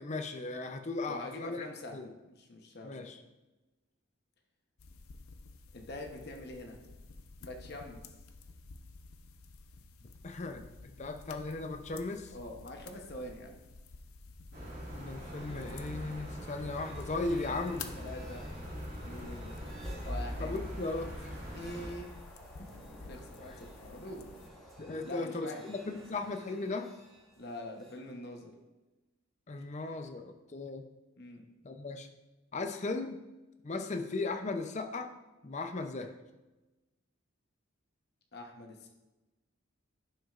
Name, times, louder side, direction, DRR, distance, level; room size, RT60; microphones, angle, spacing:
voice 1, 0.0-2.1 2.8-3.2 10.2-12.3 15.0-17.9 20.4-21.4 23.5-23.6 24.8-26.9 29.5-30.9 31.6-32.1 32.5-33.2 33.6-35.1 35.4-36.1, left 3 dB, 35° left, 6 dB, 0.5 m, -37 dB
voice 2, 1.0-2.0 2.3-3.1 5.7-6.8 7.4-8.0 12.3-13.5 18.0-18.4 19.0-19.5 20.0-20.6 21.5-22.1 22.6-22.7 23.1-24.2 25.0-25.6 25.9-26.0 27.4-28.5 31.2-31.4 38.3-38.9, left 1 dB, 50° left, 2 dB, 0.9 m, -44 dB
sound 1, 4.8-24.5, left 4 dB, 85° left, 0.6 m, -52 dB
sound 2, 14.5-21.9, equal, 50° right, 2.5 m, -43 dB
sound 3, 15.2-28.0, equal, ahead, 1.3 m, -49 dB
11.0 x 6.3 x 2.4 m, 1.1 s
head